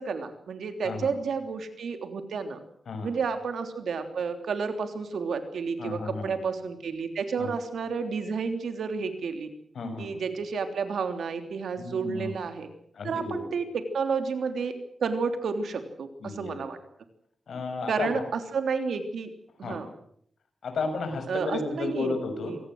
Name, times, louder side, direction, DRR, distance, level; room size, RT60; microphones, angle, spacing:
voice 1, 0.0-2.6 3.0-9.5 10.0-12.7 13.0-14.7 15.0-16.8 17.9-19.3 19.6-19.9 21.3-22.1 22.4-22.6, right 5 dB, 85° right, 7 dB, 3.3 m, -31 dB
voice 2, 5.8-6.3 7.4-7.5 9.7-10.1 11.8-12.3 13.0-13.4 16.2-16.6 17.5-18.1 19.6-19.8 20.6-22.5, left 4 dB, 80° left, 7 dB, 6.6 m, -33 dB
27.0 x 18.5 x 7.9 m, 0.67 s
wide cardioid pair, 95°, 0 cm